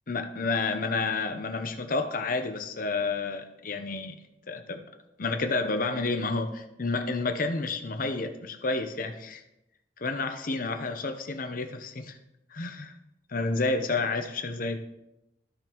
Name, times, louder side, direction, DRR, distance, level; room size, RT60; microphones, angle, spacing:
voice 1, 0.1-4.2 4.5-4.8 5.2-9.4 10.0-12.2 12.5-12.9 13.3-14.8, left 3 dB, 50° left, 7 dB, 0.8 m, -30 dB
14.0 x 5.2 x 3.0 m, 0.87 s
head